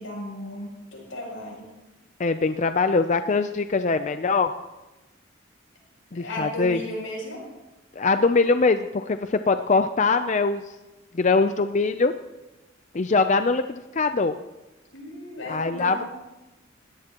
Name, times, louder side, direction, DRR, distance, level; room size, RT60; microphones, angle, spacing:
voice 1, 0.0-1.7 6.1-7.4 14.9-16.1, left 1 dB, 85° left, -1 dB, 7.2 m, -35 dB
voice 2, 2.2-4.5 6.1-6.8 8.0-10.6 11.1-12.1 12.9-14.4 15.5-16.0, left 4 dB, 40° left, 9 dB, 0.5 m, -22 dB
21.0 x 17.5 x 3.0 m, 1.1 s
head